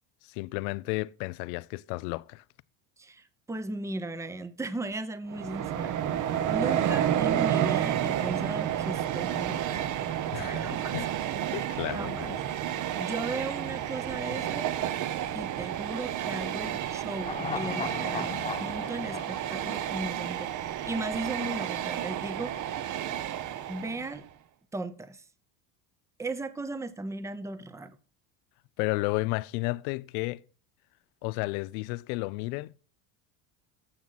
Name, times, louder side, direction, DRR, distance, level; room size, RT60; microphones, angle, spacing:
voice 1, 0.3-2.4 10.3-11.1 11.5-12.4 28.8-30.4 31.2-32.8, left 22 dB, 80° left, 0.6 m, -32 dB
voice 2, 3.0-6.0 6.5-9.8 10.4-11.0 11.9-12.4 13.0-14.7 15.3-22.6 23.7-24.3 24.7-25.2 26.2-28.0, right 2 dB, 5° right, 0.7 m, -36 dB
Train, 5.3-24.2, right 10 dB, 40° right, 0.9 m, -31 dB
sound 1, 17.2-20.6 20.9-21.0, left 6 dB, 15° left, 0.4 m, -38 dB
14.5 x 6.2 x 4.2 m
supercardioid pair, 110°, 44 cm